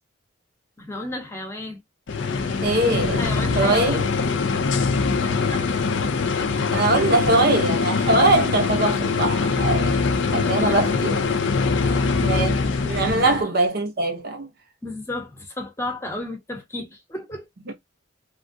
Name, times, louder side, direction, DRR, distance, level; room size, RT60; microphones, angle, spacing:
voice 1, 0.8-1.8 3.2-4.1 4.4-4.7 5.2-5.6 9.9-10.1 10.4-11.0 11.4-12.3 12.6-12.7 13.0-13.3 14.8-17.5, left 1 dB, 15° left, 0.8 m, -34 dB
sound 1, 2.1-13.4, left 4 dB, 60° left, 0.4 m, -23 dB
voice 2, 2.6-3.2 3.6-4.1 6.7-10.0 10.3-11.3 12.2-14.5 17.7-17.8, right 2 dB, 50° right, 0.6 m, -22 dB
3.2 x 2.3 x 2.6 m
head